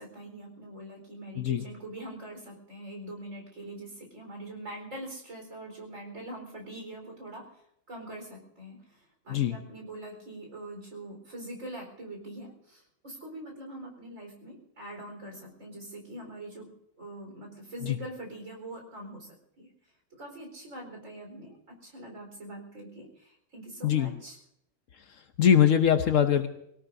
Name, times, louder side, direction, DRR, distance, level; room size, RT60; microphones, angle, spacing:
voice 1, 0.0-7.4 7.9-16.7 17.0-19.7 20.1-24.4, right 1 dB, 60° right, 0 dB, 4.7 m, -43 dB
voice 2, 25.4-26.5, left 9 dB, 65° left, 8 dB, 1.1 m, -22 dB
24.0 x 17.5 x 2.7 m, 0.75 s
omnidirectional pair, 1.6 m